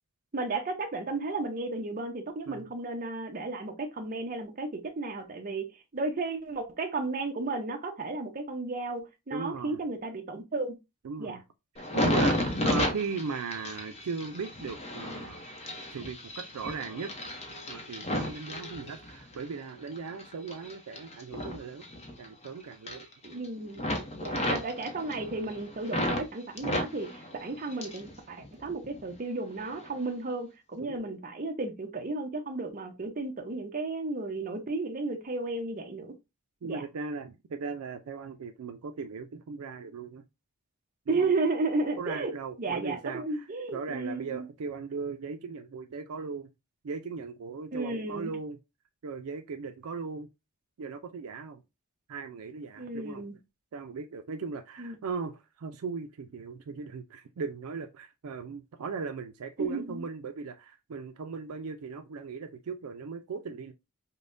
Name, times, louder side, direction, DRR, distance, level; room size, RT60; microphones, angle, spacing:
voice 1, 0.3-5.7 5.9-10.8 11.2-11.4 23.2-23.8 24.2-36.1 36.6-36.8 41.1-42.3 42.6-44.5 47.7-48.3 52.8-53.4 54.8-55.0 59.6-60.0, right 3 dB, 40° right, 0.7 m, -33 dB
voice 2, 9.3-9.8 11.0-11.4 11.9-15.4 15.9-17.1 17.7-21.9 22.2-23.1 30.8-31.1 36.6-40.2 41.1-41.3 42.0-46.5 46.8-48.6 49.0-50.3 50.8-51.6 52.1-53.2 53.7-63.7, right 5 dB, 75° right, 0.4 m, -38 dB
sound 1, 11.8-19.4 19.9-22.5 22.7-23.5 23.8-26.3 26.6-28.1 28.4-29.2 29.7-29.9, left 1 dB, 30° left, 0.7 m, -33 dB
5.2 x 2.1 x 2.5 m
head